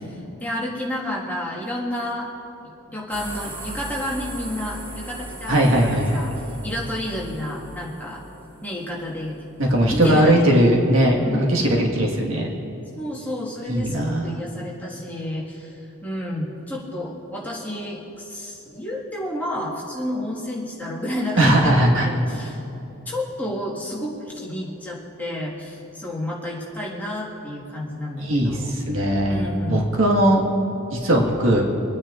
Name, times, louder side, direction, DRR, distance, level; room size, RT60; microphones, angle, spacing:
voice 1, 0.0-2.3 2.6-8.2 8.6-9.4 9.9-10.6 11.2-11.5 12.9-22.6 23.0-28.7 29.3-29.9, left 1 dB, 5° left, -6 dB, 1.6 m, -30 dB
sound 1, 3.1-9.9, right 2 dB, 50° right, 1.6 m, -38 dB
voice 2, 5.5-6.2 9.6-12.5 13.7-14.3 21.4-22.1 28.2-30.4 30.9-31.6, right 1 dB, 65° right, -1 dB, 1.6 m, -19 dB
25.5 x 9.5 x 2.5 m, 2.9 s
head